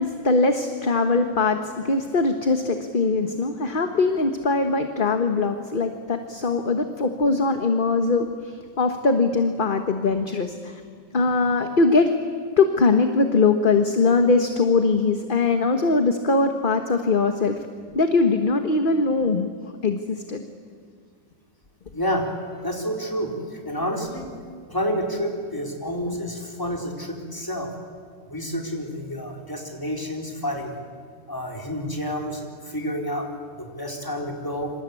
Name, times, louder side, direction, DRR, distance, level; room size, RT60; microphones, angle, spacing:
voice 1, 0.0-10.8 11.1-12.1 12.6-17.6 17.9-19.5 19.8-20.4, left 3 dB, 30° left, 7 dB, 1.3 m, -21 dB
voice 2, 21.9-22.2 22.6-24.3 24.7-27.7 28.3-30.8 31.3-33.3 33.6-34.7, equal, 10° left, 1 dB, 4.2 m, -29 dB
26.5 x 26.0 x 8.4 m, 2.1 s
omnidirectional pair, 1.9 m